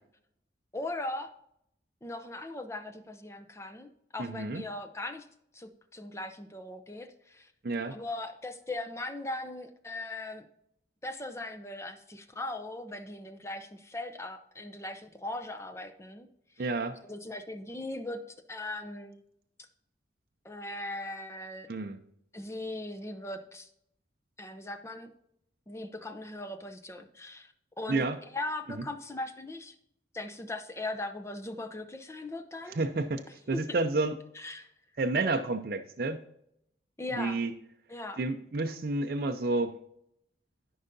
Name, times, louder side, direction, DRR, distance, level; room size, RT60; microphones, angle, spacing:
voice 1, 0.7-1.3 2.0-5.3 5.5-7.5 7.9-10.4 11.0-16.3 16.6-16.7 17.0-19.2 20.4-21.7 22.3-23.7 24.4-25.1 25.7-28.1 28.3-29.7 30.1-32.8 33.5-33.6 34.3-34.7 37.0-37.4 37.9-38.2, left 2 dB, 15° left, 7 dB, 0.5 m, -39 dB
voice 2, 4.2-4.6 7.6-8.0 16.6-17.0 21.7-22.0 27.9-28.2 32.7-33.2 33.5-34.1 35.0-36.2 37.1-37.5 38.2-39.7, right 3 dB, 50° right, 5 dB, 0.5 m, -30 dB
13.5 x 5.5 x 2.6 m, 0.75 s
head